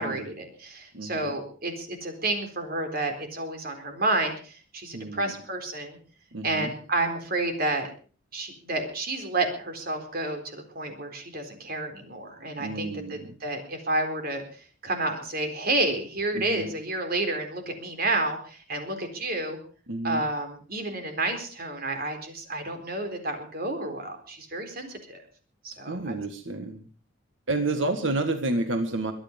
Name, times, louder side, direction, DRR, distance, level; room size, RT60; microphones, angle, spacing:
voice 1, 0.0-6.0 6.4-7.9 8.3-14.4 14.8-19.6 20.0-25.2 25.6-26.1, right 2 dB, 50° right, 6 dB, 4.1 m, -30 dB
voice 2, 0.9-1.3 4.9-5.3 6.3-6.7 12.6-13.4 16.3-16.7 19.9-20.3 25.9-26.9 27.5-29.1, right 2 dB, 70° right, 7 dB, 1.8 m, -30 dB
23.5 x 9.9 x 5.3 m, 0.40 s
head